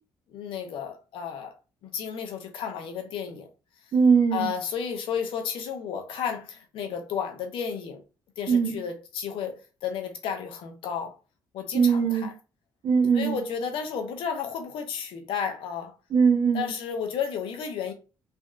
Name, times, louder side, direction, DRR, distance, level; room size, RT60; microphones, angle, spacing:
voice 1, 0.3-1.5 1.8-3.5 4.3-8.0 8.4-11.1 11.5-12.3 13.1-15.9 16.5-17.9, left 7 dB, 80° left, 0.6 m, -32 dB
voice 2, 3.9-4.5 8.5-8.8 11.7-12.3 12.8-13.4 16.1-16.7, right 6 dB, 60° right, 0.8 m, -21 dB
3.3 x 2.6 x 2.3 m
cardioid pair, 85°, 9 cm